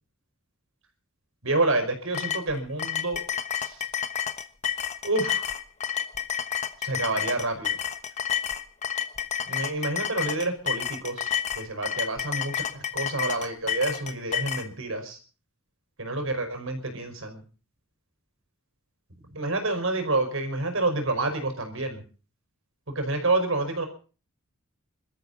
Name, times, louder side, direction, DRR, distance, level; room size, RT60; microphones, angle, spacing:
voice 1, 1.4-3.2 3.5-3.8 5.0-5.5 6.8-7.8 9.5-15.2 16.0-17.4 19.3-22.0 22.9-23.9, right 2 dB, 70° right, 5 dB, 5.2 m, -28 dB
sound 1, 2.1-14.7, left 9 dB, 35° left, 1.2 m, -30 dB
26.5 x 13.5 x 4.1 m, 0.40 s
head